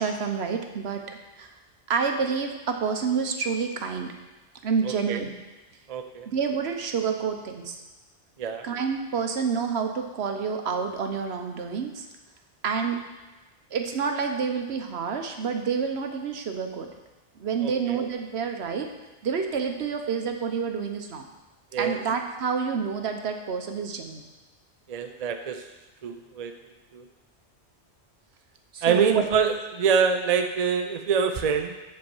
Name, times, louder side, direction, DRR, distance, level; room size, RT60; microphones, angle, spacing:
voice 1, 0.0-1.5 1.9-4.1 4.6-5.3 6.3-7.8 8.6-12.1 12.6-13.0 13.7-16.9 17.4-18.9 19.2-21.3 21.8-24.3 28.7-29.2, right 6 dB, 70° right, 5 dB, 1.1 m, -28 dB
voice 2, 4.8-5.2 5.9-6.3 8.4-8.6 17.6-18.0 21.7-22.0 24.9-25.6 26.0-26.5 26.9-27.0 28.8-31.7, right 6 dB, 45° right, 5 dB, 0.6 m, -25 dB
7.9 x 4.5 x 7.0 m, 1.1 s
omnidirectional pair, 1.1 m